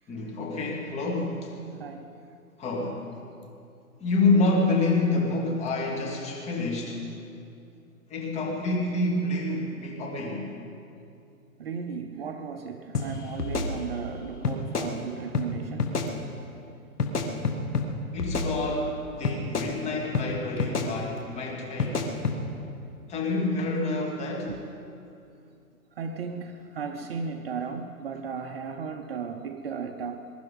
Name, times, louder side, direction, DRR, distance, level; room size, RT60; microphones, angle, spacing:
voice 1, 0.1-1.5 2.6-3.0 4.0-7.0 8.1-10.5 18.1-22.1 23.1-24.6, left 2 dB, 15° left, 2.3 m, -28 dB
voice 2, 11.6-15.9 24.5-24.6 26.0-30.3, right 6 dB, 40° right, 0.8 m, -35 dB
sound 1, 12.9-13.1 13.4-14.1 14.4-14.9 15.3-15.5 15.8-16.1 17.0-17.9 18.2-18.9 19.2-19.7 20.1-20.3 20.6-20.9 21.8-22.4, left 4 dB, 90° left, 1.9 m, -28 dB
21.5 x 12.0 x 5.3 m
hypercardioid pair, 140°, 45 cm